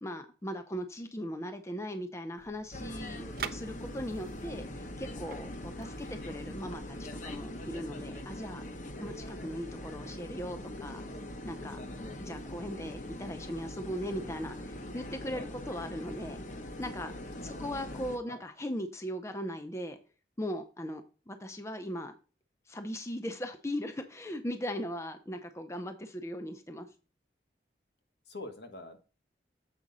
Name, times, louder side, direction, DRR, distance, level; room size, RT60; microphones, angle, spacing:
voice 1, 0.0-8.6 9.0-11.0 11.4-11.8 12.2-16.4 16.8-17.1 17.4-20.0 20.4-22.2 22.7-26.9, equal, 15° left, 7 dB, 0.6 m, -39 dB
sound 1, 2.4-7.4, right 7 dB, 55° right, 0.5 m, -47 dB
sound 2, 2.7-18.2, left 1 dB, 45° left, 0.8 m, -42 dB
voice 2, 17.4-18.4 28.3-29.0, left 2 dB, 70° left, 6 dB, 1.2 m, -46 dB
7.4 x 5.1 x 3.9 m, 0.34 s
head